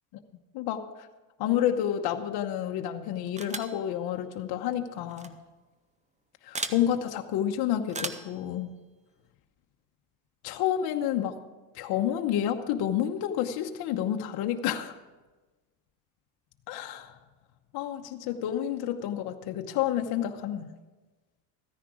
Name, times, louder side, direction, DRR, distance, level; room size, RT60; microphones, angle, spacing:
voice 1, 0.5-1.1 1.4-5.4 6.4-8.7 10.4-11.4 11.7-14.9 16.7-17.1 17.7-20.7, left 10 dB, 55° left, 4 dB, 1.0 m, -29 dB
sound 1, 3.4-3.8 5.1-5.3 6.5-6.8 7.9-8.3, right 4 dB, 15° right, 0.7 m, -35 dB
14.5 x 10.0 x 4.9 m, 1.2 s
supercardioid pair, 120°, 47 cm